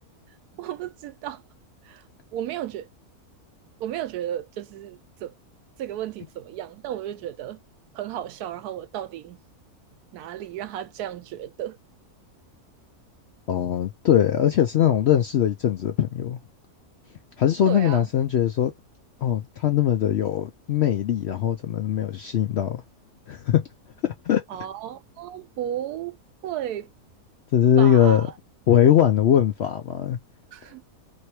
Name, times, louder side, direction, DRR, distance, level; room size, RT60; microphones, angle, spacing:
voice 1, 0.5-1.4 1.8-2.0 2.3-2.9 3.8-5.3 5.8-7.6 7.9-9.4 10.1-11.8 17.6-18.1 24.5-26.2 26.4-26.9 27.8-28.3 30.5-30.8, right 11 dB, 85° right, 1.1 m, -34 dB
voice 2, 13.5-16.4 17.4-18.7 19.2-22.8 23.3-23.6 24.0-24.4 27.5-28.3 28.7-30.2, left 10 dB, 70° left, 0.6 m, -21 dB
3.1 x 2.7 x 2.7 m
omnidirectional pair, 1.6 m